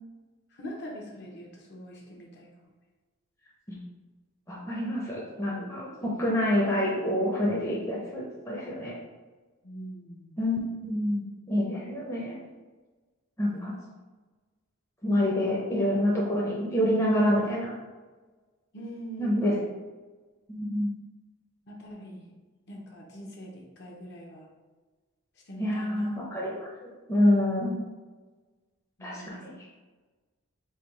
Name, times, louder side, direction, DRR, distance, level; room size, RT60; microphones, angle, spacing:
voice 1, 0.5-2.7 9.6-10.4 13.5-13.8 18.7-19.7 21.6-22.3 22.7-24.5 25.5-26.1 29.0-29.6, equal, 60° left, -1 dB, 0.8 m, -42 dB
voice 2, 4.5-9.0 10.4-12.4 13.4-13.7 15.0-17.7 19.2-19.5 20.5-20.9 25.6-27.8 29.0-29.5, left 1 dB, 15° left, -5 dB, 0.6 m, -27 dB
3.4 x 2.3 x 4.4 m, 1.3 s
head